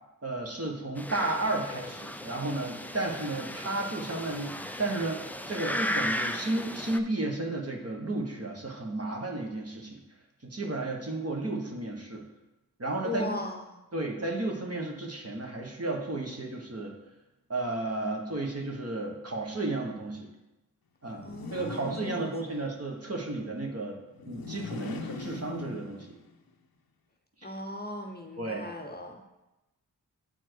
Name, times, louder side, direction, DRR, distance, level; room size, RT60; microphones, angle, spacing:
voice 1, 0.2-5.2 5.5-10.0 10.5-12.2 12.8-13.4 13.9-16.9 17.5-20.3 21.0-21.2 21.5-24.0 24.3-26.2 27.4-27.5 28.4-28.6, right 2 dB, 40° right, 0 dB, 1.4 m, -33 dB
sound 1, 1.0-7.0, left 1 dB, 5° left, 0.4 m, -36 dB
voice 2, 13.0-13.8 21.2-22.7 27.4-29.2, left 2 dB, 25° left, 2 dB, 0.8 m, -38 dB
sound 2, 21.1-22.8 24.1-26.3, left 4 dB, 70° left, 0.7 m, -41 dB
7.9 x 4.5 x 4.5 m, 0.99 s
wide cardioid pair, 55°, 37 cm